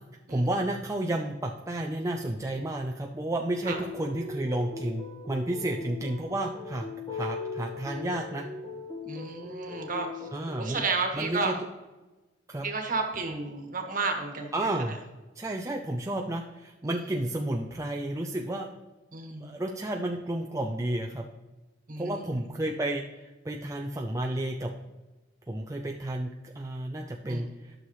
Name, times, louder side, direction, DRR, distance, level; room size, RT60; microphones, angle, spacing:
voice 1, 0.3-8.5 10.3-10.8 11.1-11.5 12.5-12.7 14.5-15.0 15.4-18.7 19.4-21.3 22.0-23.0 23.4-24.7 25.5-27.7, right 1 dB, 15° right, 1 dB, 0.5 m, -31 dB
sound 1, 3.6-10.6, left 3 dB, 20° left, 1.2 m, -39 dB
voice 2, 9.0-10.3 10.6-11.6 12.6-14.5 14.9-15.0 16.8-17.0 19.1-19.5 21.9-22.3 27.2-27.4, right 4 dB, 45° right, 3 dB, 1.4 m, -32 dB
11.5 x 6.5 x 3.1 m, 1.1 s
head